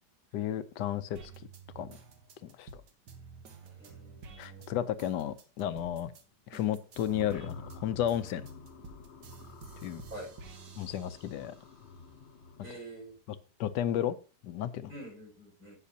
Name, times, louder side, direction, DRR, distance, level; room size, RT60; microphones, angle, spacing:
voice 1, 0.3-1.2 1.8-2.0 2.4-2.8 4.4-6.1 6.5-8.5 9.8-10.0 10.8-11.5 13.3-14.2 14.4-14.9, left 11 dB, 85° left, 13 dB, 1.3 m, -33 dB
sound 1, 1.2-6.2 6.5-11.7 12.2-13.2, right 5 dB, 85° right, 1.9 m, -51 dB
voice 2, 3.6-4.7 10.1-10.3 12.6-13.2 14.9-15.7, right 1 dB, 55° right, -3 dB, 6.2 m, -46 dB
sound 2, 6.9-12.7, left 4 dB, 50° left, 0.9 m, -49 dB
16.5 x 5.9 x 2.8 m, 0.34 s
omnidirectional pair, 1.8 m